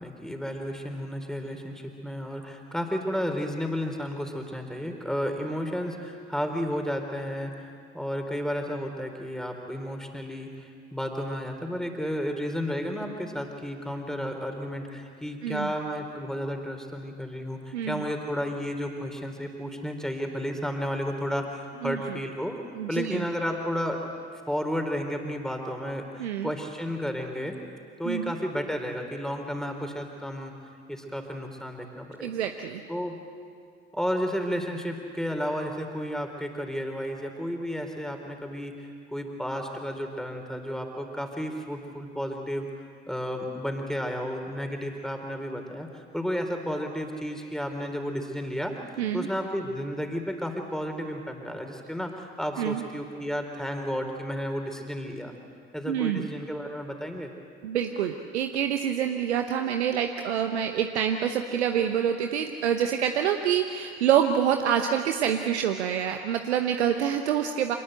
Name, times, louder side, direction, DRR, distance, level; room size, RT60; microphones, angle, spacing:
voice 1, 0.0-22.6 22.9-24.0 24.5-27.6 28.0-30.5 30.9-32.3 32.9-33.2 33.9-38.8 39.1-42.7 43.1-48.7 49.1-55.3 55.7-57.3, equal, ahead, 4 dB, 3.9 m, -32 dB
voice 2, 15.4-15.7 17.7-18.0 21.8-22.2 22.7-23.2 26.2-26.5 28.0-28.3 32.2-32.8 49.0-49.3 52.6-52.8 55.9-56.3 57.6-67.8, right 9 dB, 75° right, 6 dB, 1.0 m, -26 dB
26.5 x 19.5 x 8.0 m, 2.2 s
figure-of-eight pair, 55°, 34 cm